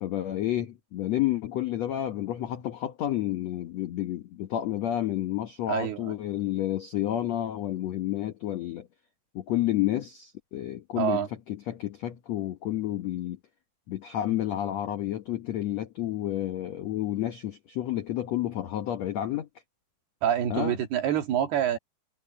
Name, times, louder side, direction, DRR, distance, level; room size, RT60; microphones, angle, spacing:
voice 1, 0.0-8.9 9.3-13.4 13.9-19.5 20.5-20.7, left 13 dB, 75° left, 1.5 m, -30 dB
voice 2, 5.7-6.2 11.0-11.3 20.2-21.8, right 10 dB, 75° right, 4.1 m, -26 dB
omnidirectional pair, 4.6 m